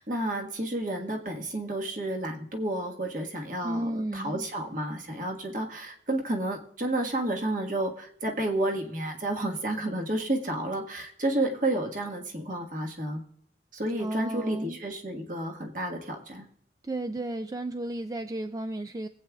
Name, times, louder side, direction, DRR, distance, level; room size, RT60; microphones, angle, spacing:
voice 1, 0.0-13.2 13.7-16.5, right 1 dB, 45° right, 2 dB, 1.5 m, -31 dB
voice 2, 3.6-4.5 14.0-14.8 16.8-19.1, right 1 dB, 20° right, 8 dB, 0.3 m, -33 dB
23.5 x 8.3 x 2.4 m, 0.73 s
head